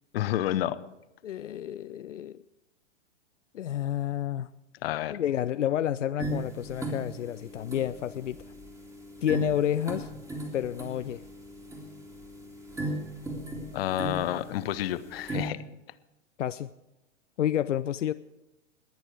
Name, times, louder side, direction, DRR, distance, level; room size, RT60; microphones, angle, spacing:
voice 1, 0.1-0.8 4.8-5.2 13.7-15.6, left 13 dB, 55° left, 15 dB, 0.8 m, -29 dB
voice 2, 1.2-2.4 3.5-4.5 5.1-8.4 9.2-10.1 10.5-11.2 16.4-16.7 17.4-18.1, left 11 dB, 80° left, 12 dB, 0.5 m, -30 dB
sound 1, 6.2-15.5, right 1 dB, 10° right, 2.2 m, -38 dB
21.0 x 9.0 x 4.7 m, 0.96 s
figure-of-eight pair, 110°, 36 cm